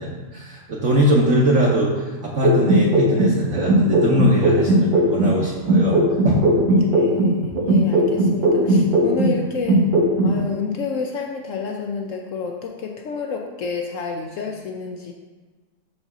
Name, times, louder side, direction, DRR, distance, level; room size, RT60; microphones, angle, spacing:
voice 1, 0.0-6.5, equal, 55° right, -3 dB, 1.0 m, -21 dB
sound 1, 2.4-5.4 5.7-9.4 9.7-10.4, right 1 dB, 85° right, 1.7 m, -17 dB
voice 2, 6.9-9.8 10.2-15.1, left 5 dB, 85° left, 2 dB, 0.6 m, -29 dB
5.4 x 3.9 x 6.0 m, 1.4 s
omnidirectional pair, 2.0 m